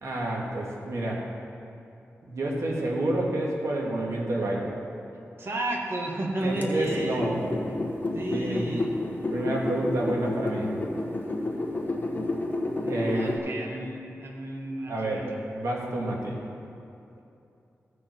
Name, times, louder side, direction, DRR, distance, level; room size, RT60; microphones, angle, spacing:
voice 1, 0.0-1.3 2.3-4.7 6.4-7.5 8.3-8.7 9.3-10.7 12.9-13.3 14.9-15.3 15.5-16.4, right 1 dB, 75° right, -2 dB, 1.8 m, -29 dB
voice 2, 5.4-7.3 8.1-8.9 12.8-15.2, right 1 dB, 50° right, 0 dB, 1.7 m, -32 dB
sound 1, 6.6-13.4, left 2 dB, 35° left, 1.5 m, -30 dB
15.5 x 5.5 x 4.5 m, 2.7 s
wide cardioid pair, 75°, 5 cm